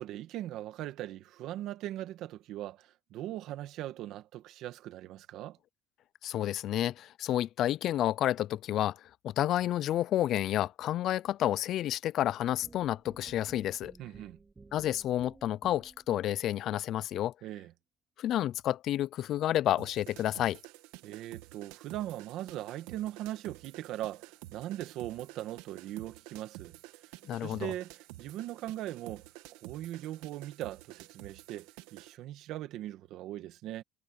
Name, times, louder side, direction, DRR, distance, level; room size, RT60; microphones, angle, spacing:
voice 1, 0.0-5.6 14.0-14.4 17.4-17.7 21.0-27.1 27.4-33.8, right 13 dB, 50° right, 1.8 m, -40 dB
voice 2, 6.2-13.9 14.7-17.3 18.2-20.6 27.2-27.7, left 12 dB, 40° left, 0.3 m, -30 dB
sound 1, 12.6-16.2, right 3 dB, 10° right, 1.2 m, -54 dB
sound 2, 19.8-32.2, right 18 dB, 85° right, 2.0 m, -50 dB
cardioid pair, 165°, 0 cm